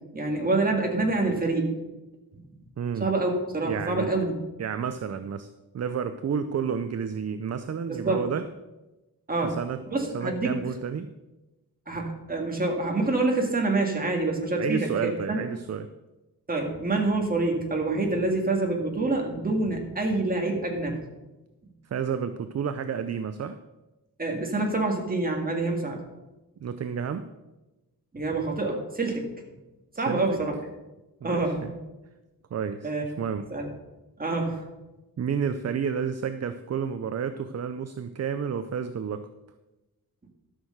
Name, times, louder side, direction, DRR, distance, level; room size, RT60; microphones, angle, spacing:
voice 1, 0.1-1.7 3.0-4.3 7.9-8.3 9.3-9.6 9.9-10.5 11.9-15.4 16.5-21.0 24.2-26.0 28.1-29.2 30.0-30.5 31.2-31.7 32.8-33.1 33.5-33.7 34.2-34.6, right 2 dB, 25° right, 1 dB, 2.0 m, -26 dB
voice 2, 2.8-3.1 3.7-4.1 4.6-5.5 5.7-8.5 9.4-9.8 10.1-11.1 14.6-15.9 21.8-23.6 26.6-27.2 30.0-30.4 31.2-31.7 32.5-33.5 35.2-39.3, right 7 dB, 45° right, 11 dB, 0.5 m, -30 dB
12.5 x 6.4 x 6.5 m, 1.0 s
wide cardioid pair, 155°, 37 cm